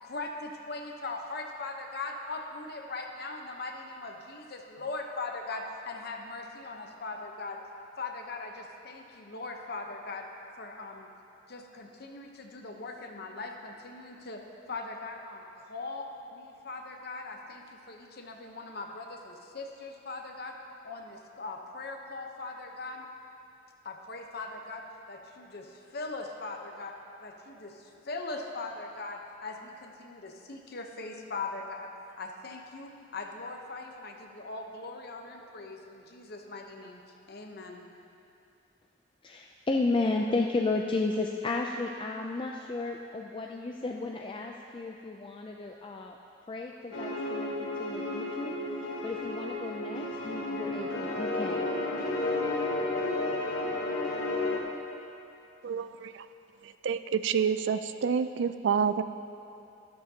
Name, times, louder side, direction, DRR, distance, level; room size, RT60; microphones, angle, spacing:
voice 1, 0.0-7.6 8.0-10.3 10.6-11.1 11.5-14.4 14.7-20.6 20.8-23.0 23.8-27.0 27.2-37.0 37.3-37.9, left 3 dB, 55° left, 2 dB, 0.9 m, -40 dB
voice 2, 39.2-46.2 46.5-48.6 49.0-51.7, left 3 dB, 25° left, 1 dB, 0.4 m, -33 dB
sound 1, 46.9-54.6, left 2 dB, 90° left, 1.1 m, -32 dB
voice 3, 55.6-56.1 56.8-59.0, right 6 dB, 65° right, 12 dB, 0.3 m, -28 dB
12.0 x 12.0 x 2.8 m, 2.7 s
head